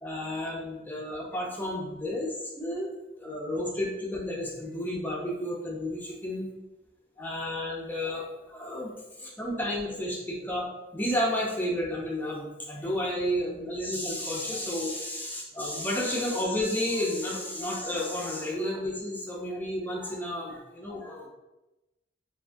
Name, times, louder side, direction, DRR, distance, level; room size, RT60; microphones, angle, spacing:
voice 1, 0.0-2.9 3.2-6.5 7.2-10.7 10.9-21.3, left 1 dB, 10° left, -4 dB, 0.6 m, -32 dB
2.6 x 2.3 x 3.4 m, 1.0 s
head